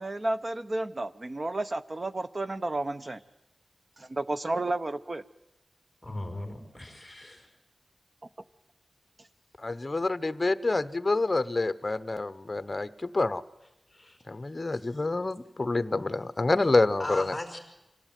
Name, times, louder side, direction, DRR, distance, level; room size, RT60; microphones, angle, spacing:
voice 1, 0.0-3.2 4.0-5.2, right 2 dB, 40° right, 13 dB, 0.9 m, -32 dB
voice 2, 6.0-7.5 13.9-14.2 17.0-17.6, left 1 dB, 10° left, 5 dB, 4.7 m, -38 dB
voice 3, 9.6-13.4 14.3-17.4, left 2 dB, 35° left, 13 dB, 1.0 m, -27 dB
26.0 x 17.0 x 9.2 m, 0.96 s
wide cardioid pair, 95°, 0 cm